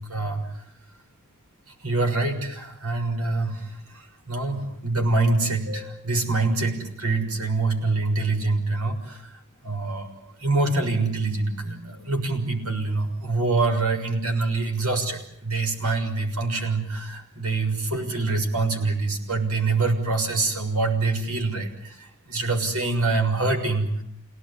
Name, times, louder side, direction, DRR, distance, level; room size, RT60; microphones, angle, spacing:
voice 1, 0.1-0.4 1.8-3.7 3.9-9.2 9.6-10.1 10.4-22.0 22.3-23.9, right 3 dB, 90° right, 4 dB, 6.5 m, -25 dB
28.0 x 18.5 x 9.8 m, 0.73 s
head